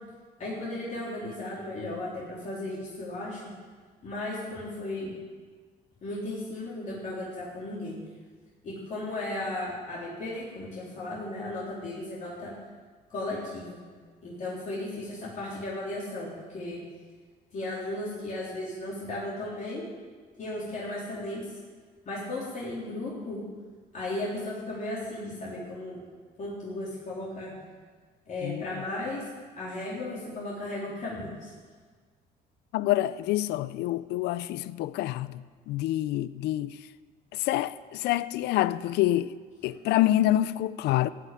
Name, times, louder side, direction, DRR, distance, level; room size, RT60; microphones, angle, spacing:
voice 1, 0.4-3.4 4.0-5.1 6.0-8.0 8.6-12.5 13.1-13.8 14.2-16.8 17.5-19.8 20.4-21.5 22.1-23.4 23.9-26.0 26.4-27.5 28.3-29.2 29.6-31.5, left 2 dB, 50° left, 3.9 m, -35 dB
voice 2, 32.7-36.8 37.3-39.3 39.6-41.1, left 14 dB, 80° left, 0.5 m, -27 dB
15.5 x 5.8 x 9.3 m
cardioid pair, 110°, 17 cm